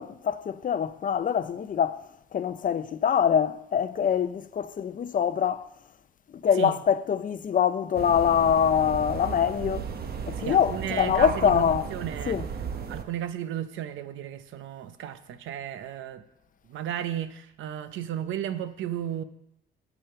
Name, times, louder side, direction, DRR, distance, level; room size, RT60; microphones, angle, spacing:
voice 1, 0.0-2.0 2.3-5.7 6.4-9.9 10.3-11.9 12.3-12.5, left 8 dB, 45° left, 0.5 m, -24 dB
sound 1, 7.9-13.0, right 6 dB, 50° right, 0.9 m, -35 dB
voice 2, 10.3-11.6 11.9-12.4 12.9-16.2 16.7-19.2, right 10 dB, 80° right, 0.7 m, -34 dB
8.9 x 7.1 x 5.7 m
cardioid pair, 90°, 20 cm